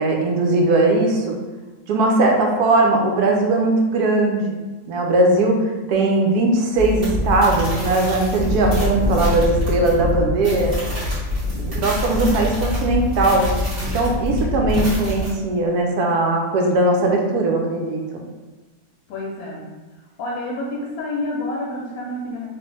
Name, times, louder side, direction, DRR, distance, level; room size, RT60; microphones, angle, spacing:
voice 1, 0.0-1.3 1.9-4.6 4.9-5.6 5.9-10.7 11.5-13.5 13.8-18.2, right 2 dB, 75° right, 1 dB, 1.0 m, -19 dB
sound 1, 6.7-15.3, left 1 dB, 35° right, 1.4 m, -24 dB
voice 2, 11.4-11.8 19.1-19.7 20.2-22.5, left 1 dB, 70° left, -2 dB, 1.0 m, -29 dB
3.2 x 2.4 x 3.1 m, 1.2 s
omnidirectional pair, 1.7 m